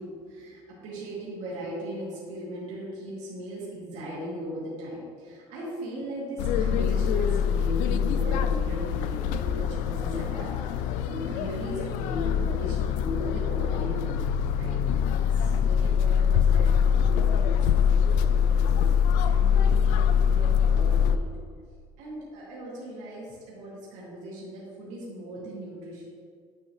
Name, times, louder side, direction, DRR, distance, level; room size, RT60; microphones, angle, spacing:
voice 1, 0.0-14.2 14.5-14.8 15.2-21.2 22.0-26.1, equal, 70° right, -7 dB, 2.0 m, -38 dB
sound 1, 6.4-21.2, left 7 dB, 75° left, 0.4 m, -24 dB
9.6 x 5.5 x 3.0 m, 2.1 s
cardioid pair, 140°, 13 cm